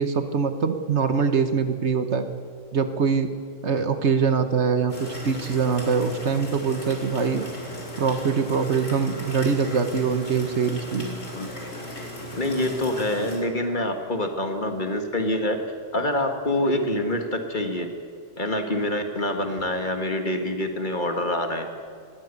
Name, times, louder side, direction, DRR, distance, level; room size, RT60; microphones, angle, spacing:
voice 1, 0.0-2.3 2.7-3.3 3.6-7.4 8.0-11.1, right 5 dB, 65° right, 9 dB, 1.4 m, -23 dB
sound 1, 4.9-13.4, equal, 85° left, 4.2 m, -37 dB
voice 2, 11.0-11.5 12.4-15.6 15.9-17.9 18.4-21.7, left 1 dB, 40° left, 5 dB, 1.9 m, -26 dB
20.5 x 15.0 x 8.3 m, 2.2 s
omnidirectional pair, 1.3 m